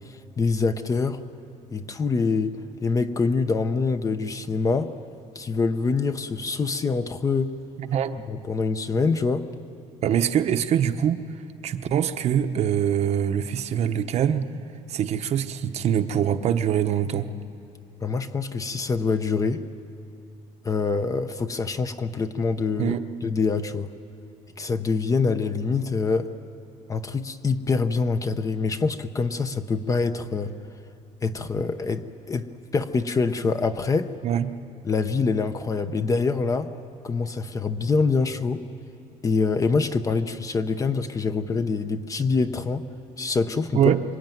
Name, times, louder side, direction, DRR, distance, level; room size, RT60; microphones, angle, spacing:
voice 1, 0.1-1.2 1.7-4.9 5.3-7.5 8.3-9.5 18.0-19.6 20.6-23.0 23.2-23.9 24.6-26.3 26.9-30.5 31.2-34.1 34.8-36.7 37.0-38.6 39.2-42.9 43.2-43.9, left 4 dB, 25° left, 9 dB, 0.8 m, -25 dB
voice 2, 7.8-8.2 10.0-11.2 11.6-14.4 14.9-17.3 22.8-23.0 34.2-34.5 43.7-44.0, right 9 dB, 50° right, 8 dB, 1.0 m, -23 dB
26.5 x 23.5 x 9.3 m, 2.7 s
cardioid pair, 145°, 14 cm